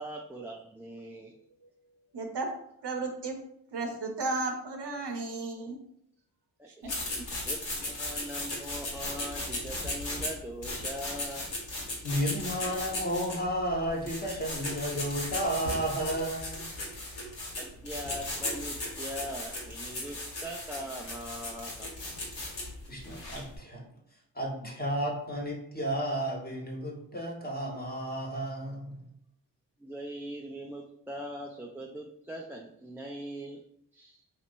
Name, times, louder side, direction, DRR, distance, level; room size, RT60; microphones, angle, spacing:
voice 1, 0.0-1.3 6.6-6.9 7.4-11.5 17.6-21.9 29.8-33.6 33.9-34.2, equal, 5° right, -2 dB, 0.4 m, -41 dB
voice 2, 2.1-2.5 2.8-3.4 3.7-5.8 6.7-7.1, right 3 dB, 60° right, 3 dB, 0.8 m, -34 dB
sound 1, 6.8-23.6, left 1 dB, 65° left, 1.5 m, -37 dB
voice 3, 12.0-16.7 22.9-23.8 24.3-29.1, equal, 20° left, -1 dB, 1.2 m, -32 dB
4.2 x 2.9 x 2.6 m, 0.72 s
supercardioid pair, 40°, 47 cm